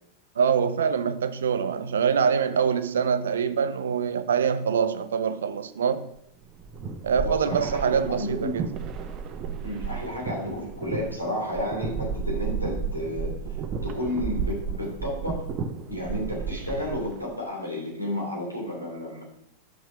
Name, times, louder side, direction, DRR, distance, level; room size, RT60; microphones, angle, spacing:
voice 1, 0.4-6.1 7.0-8.7, right 6 dB, 65° right, 0.6 m, -24 dB
sound 1, 6.4-17.2, right 5 dB, 30° right, 0.8 m, -33 dB
voice 2, 7.2-8.6 9.6-13.3 13.8-15.5 15.9-19.2, left 1 dB, 90° left, 3.2 m, -32 dB
6.1 x 6.0 x 5.7 m
figure-of-eight pair, 90°, 0 cm